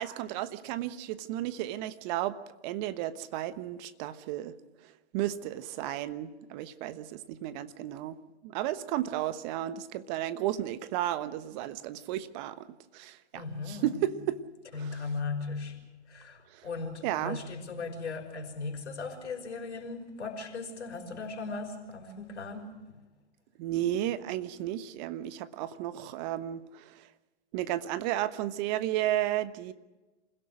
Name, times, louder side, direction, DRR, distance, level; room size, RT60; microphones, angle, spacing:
voice 1, 0.0-4.6 5.1-8.2 8.4-12.7 12.9-14.4 14.7-15.0 16.5-16.6 17.0-17.4 23.6-27.1 27.5-29.7, right 13 dB, 40° right, 1.2 m, -33 dB
voice 2, 13.3-14.0 14.7-23.0, left 4 dB, 80° left, 5.5 m, -38 dB
27.5 x 17.0 x 6.4 m
hypercardioid pair, 115°, 35 cm